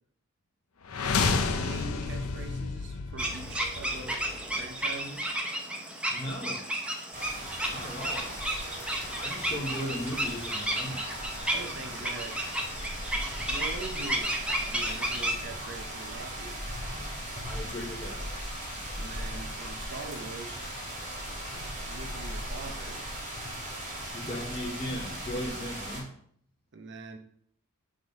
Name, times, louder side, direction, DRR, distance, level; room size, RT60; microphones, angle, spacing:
sound 1, 0.8-4.8, left 4 dB, 75° left, 0.7 m, -31 dB
voice 1, 1.4-5.3 11.5-12.4 13.5-16.6 18.9-20.7 21.9-23.0 26.7-27.2, right 3 dB, 55° right, 6 dB, 0.8 m, -43 dB
sound 2, 3.2-15.3, right 1 dB, 5° right, 0.9 m, -33 dB
voice 2, 6.1-6.7 7.7-8.4 9.2-11.0 17.4-18.3 24.1-26.1, equal, 25° left, -3 dB, 1.0 m, -37 dB
sound 3, 7.1-26.0, equal, 35° right, 2.3 m, -38 dB
6.3 x 3.8 x 5.2 m, 0.62 s
head